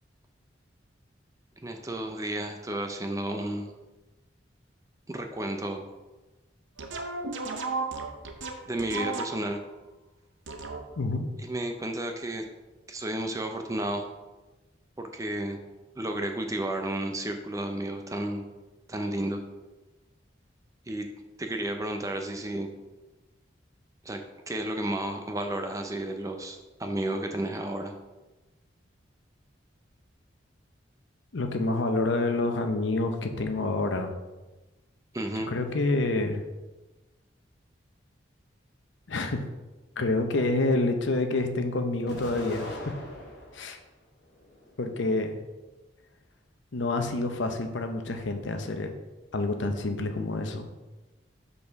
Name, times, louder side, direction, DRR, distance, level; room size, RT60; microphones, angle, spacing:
voice 1, 1.6-3.7 5.1-5.8 8.7-9.6 11.4-12.4 12.9-14.1 15.0-15.6 16.0-18.4 18.9-19.4 20.9-21.1 21.4-22.7 24.0-24.2 24.5-27.9 35.1-35.5, right 1 dB, 15° right, 5 dB, 0.5 m, -32 dB
sound 1, 6.8-9.6 10.5-11.1, right 3 dB, 80° right, 0.7 m, -34 dB
voice 2, 11.0-11.3 31.3-34.1 35.5-36.4 39.1-39.4 40.0-42.8 43.5-43.8 44.8-45.4 46.7-48.9 49.3-50.7, left 2 dB, 75° left, 6 dB, 0.7 m, -28 dB
Explosion, 42.1-43.7 44.2-45.1, left 1 dB, 60° left, 1.4 m, -41 dB
5.4 x 4.1 x 5.8 m, 1.1 s
head